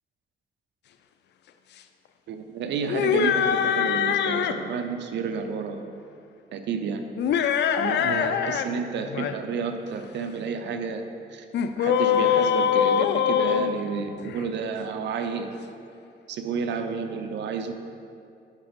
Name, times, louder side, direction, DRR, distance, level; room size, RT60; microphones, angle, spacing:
voice 1, 2.3-5.9 6.5-7.0 7.8-11.0 11.3-11.4 11.8-15.5 16.3-17.7, right 5 dB, 90° right, 7 dB, 0.6 m, -31 dB
sound 1, 2.8-4.6 7.2-8.7 9.0-9.3 11.5-14.4, left 8 dB, 75° left, 0.4 m, -23 dB
9.0 x 4.0 x 5.1 m, 2.4 s
cardioid pair, 105°, 18 cm